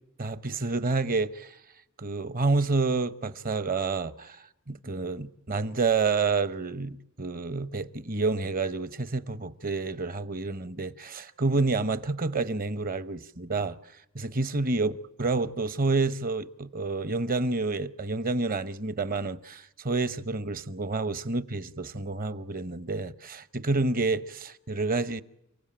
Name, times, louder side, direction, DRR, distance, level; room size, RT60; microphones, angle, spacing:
voice 1, 0.2-1.5 2.0-4.4 4.7-13.8 14.1-25.2, right 3 dB, 40° right, 0.9 m, -29 dB
29.5 x 16.5 x 8.8 m
head